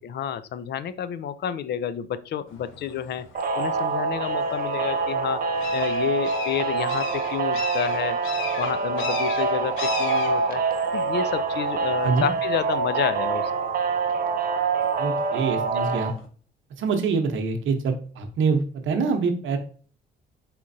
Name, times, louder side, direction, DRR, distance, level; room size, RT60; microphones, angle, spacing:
voice 1, 0.0-3.3 3.6-5.4 5.7-8.2 8.6-10.6 10.9-13.5 15.7-15.8, left 9 dB, 60° left, 14 dB, 0.4 m, -29 dB
sound 1, 2.5-16.3, left 5 dB, 85° left, 0.7 m, -40 dB
sound 2, 3.3-16.1, right 4 dB, 50° right, 0.7 m, -25 dB
voice 2, 15.0-16.1 16.8-19.6, right 4 dB, 80° right, 6 dB, 0.8 m, -25 dB
4.3 x 3.7 x 2.6 m, 0.42 s
cardioid pair, 90°, 20 cm